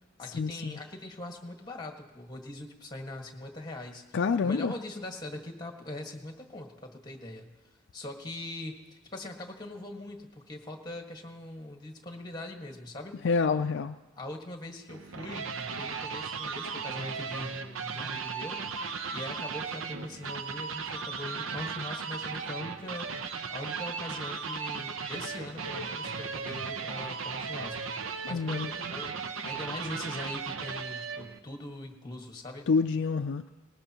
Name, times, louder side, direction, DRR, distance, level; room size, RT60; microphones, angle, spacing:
voice 1, 0.2-7.5 7.9-8.8 9.1-13.2 14.2-18.7 19.1-23.1 23.5-29.1 29.4-32.7, left 1 dB, 20° left, 3 dB, 1.6 m, -41 dB
voice 2, 4.1-4.7 13.2-13.9 28.3-28.7 32.7-33.5, left 5 dB, 60° left, 7 dB, 0.4 m, -27 dB
sound 1, 14.9-31.4, right 5 dB, 90° right, 0.8 m, -36 dB
19.5 x 19.5 x 2.9 m, 1.2 s
head